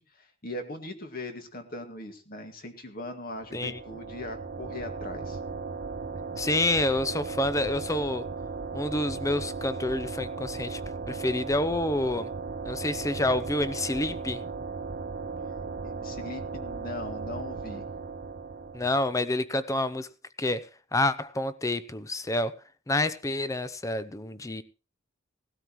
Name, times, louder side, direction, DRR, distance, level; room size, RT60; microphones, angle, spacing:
voice 1, 0.0-5.4 15.8-17.9, left 1 dB, 50° left, 2.1 m, -40 dB
sound 1, 3.3-19.2, right 4 dB, 50° right, 0.7 m, -36 dB
voice 2, 6.4-8.3 8.7-10.8 11.1-12.3 12.7-14.4 18.7-20.1 20.4-20.7 20.9-22.6 22.9-24.6, left 2 dB, 15° left, 0.6 m, -28 dB
18.0 x 13.0 x 3.1 m
head